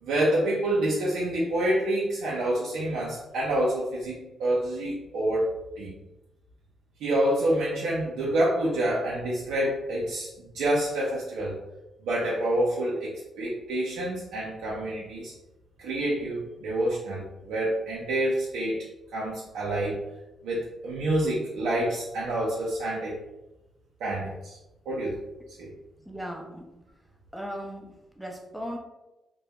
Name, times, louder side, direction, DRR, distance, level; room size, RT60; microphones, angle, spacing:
voice 1, 0.0-5.5 5.8-5.9 7.0-11.6 12.0-15.3 15.8-18.8 19.1-20.0 20.4-23.2 24.0-24.6 24.9-25.2 25.6-25.7, right 1 dB, 85° right, -6 dB, 0.5 m, -27 dB
voice 2, 26.1-26.7 27.3-28.8, equal, ahead, 1 dB, 0.5 m, -37 dB
2.2 x 2.1 x 2.8 m, 0.98 s
cardioid pair, 65°, 0 cm